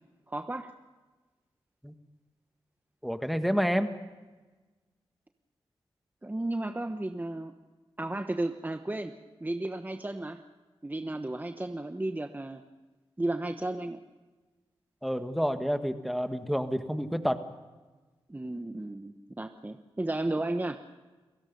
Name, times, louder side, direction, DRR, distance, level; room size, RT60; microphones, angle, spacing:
voice 1, 0.3-0.7 6.2-7.6 8.0-10.4 10.8-12.6 13.2-14.0 18.3-20.8, right 2 dB, 20° right, 7 dB, 1.1 m, -33 dB
voice 2, 3.0-3.9 15.0-17.4, equal, ahead, 7 dB, 1.8 m, -29 dB
30.0 x 17.0 x 5.5 m, 1.3 s
cardioid pair, 60°, 10 cm